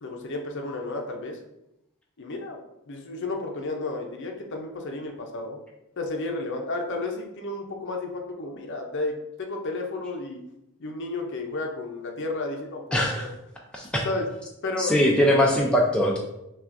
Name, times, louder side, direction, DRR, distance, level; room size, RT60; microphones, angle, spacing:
voice 1, 0.0-1.4 2.2-2.6 2.9-5.6 6.0-10.4 10.8-13.3 14.0-14.3 14.6-14.9 15.3-15.4, left 2 dB, 55° left, 2 dB, 0.6 m, -32 dB
voice 2, 12.9-13.3 13.7-14.1 14.8-16.2, equal, 5° left, -2 dB, 0.4 m, -21 dB
5.8 x 2.4 x 2.5 m, 0.87 s
head